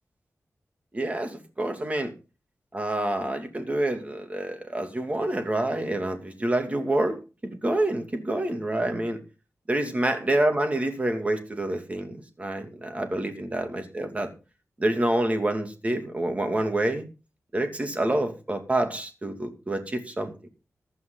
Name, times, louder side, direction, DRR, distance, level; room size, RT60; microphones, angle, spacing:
voice 1, 0.9-2.1 2.7-9.2 9.7-14.3 14.8-17.0 17.5-20.5, right 1 dB, 25° right, 5 dB, 2.7 m, -27 dB
15.5 x 11.0 x 4.0 m, 0.32 s
wide cardioid pair, 120°, 6 cm